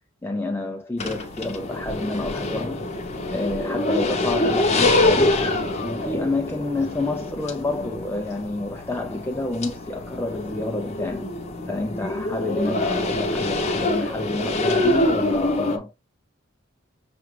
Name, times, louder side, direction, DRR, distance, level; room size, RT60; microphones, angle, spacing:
voice 1, 0.2-2.8 3.3-5.5 5.8-11.3 11.7-15.9, left 2 dB, 10° left, 0.3 m, -28 dB
sound 1, 1.0-15.8, left 2 dB, 35° left, 0.7 m, -25 dB
5.8 x 2.4 x 3.2 m
head